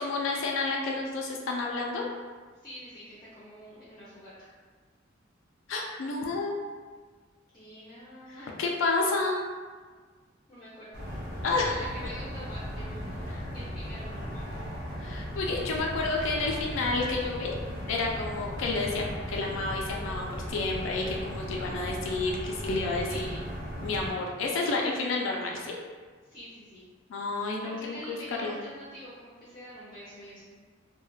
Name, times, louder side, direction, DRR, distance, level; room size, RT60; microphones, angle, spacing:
voice 1, 0.0-2.0 5.7-6.5 8.3-9.4 11.4-11.8 13.3-13.5 15.0-17.5 17.9-23.3 23.8-25.8 27.1-28.2 28.4-28.5, left 3 dB, 85° left, 0 dB, 0.4 m, -30 dB
voice 2, 2.6-4.5 7.5-8.5 10.5-11.0 11.5-14.6 23.1-23.4 26.2-26.9 27.3-30.5, equal, 25° left, -10 dB, 0.5 m, -46 dB
sound 1, 10.9-24.1, equal, 55° right, 1.1 m, -37 dB
2.3 x 2.1 x 3.0 m, 1.5 s
head